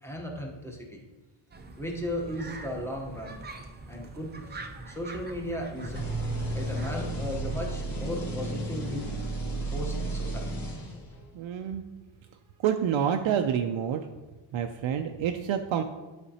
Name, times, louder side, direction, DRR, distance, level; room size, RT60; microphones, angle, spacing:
voice 1, 0.0-1.1 1.8-3.4 3.9-6.0 6.5-9.1 9.7-10.5, equal, 5° left, -1 dB, 0.9 m, -36 dB
sound 1, 1.5-7.0, right 2 dB, 25° right, 0.5 m, -44 dB
sound 2, 5.8-11.2, right 2 dB, 45° left, 1.6 m, -33 dB
voice 2, 11.3-11.8 12.6-14.1 14.5-15.8, right 8 dB, 80° right, 5 dB, 0.6 m, -28 dB
11.0 x 5.1 x 2.8 m, 1.2 s
wide cardioid pair, 180°, 46 cm